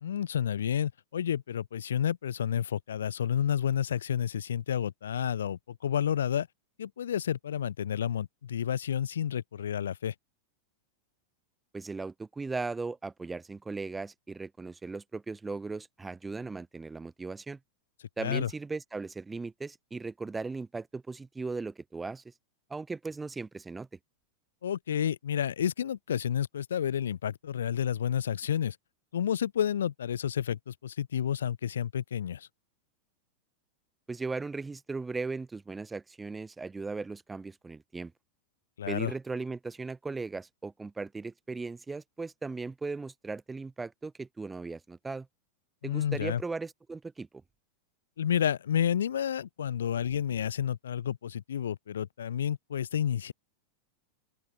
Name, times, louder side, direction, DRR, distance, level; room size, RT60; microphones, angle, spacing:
voice 1, 0.0-6.5 6.8-10.1 18.2-18.5 24.6-28.8 29.1-32.5 38.8-39.1 45.8-46.4 48.2-53.3, left 9 dB, 65° left, 0.6 m, -30 dB
voice 2, 11.7-17.6 18.2-22.2 22.7-23.9 34.1-38.1 38.9-45.3 45.8-47.3, right 3 dB, 10° right, 1.2 m, -37 dB
open air
figure-of-eight pair, 90°, 0 cm